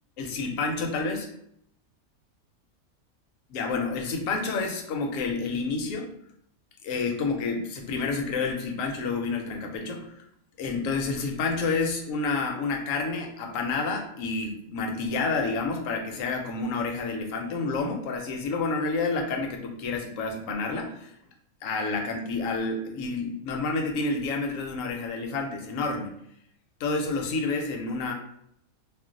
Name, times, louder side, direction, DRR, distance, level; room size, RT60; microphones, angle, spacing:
voice 1, 0.2-1.3 3.5-6.1 6.8-10.2 10.6-21.1 21.6-26.1 26.8-28.1, left 3 dB, 70° left, 3 dB, 0.9 m, -29 dB
2.4 x 2.1 x 3.8 m, 0.72 s
omnidirectional pair, 1.5 m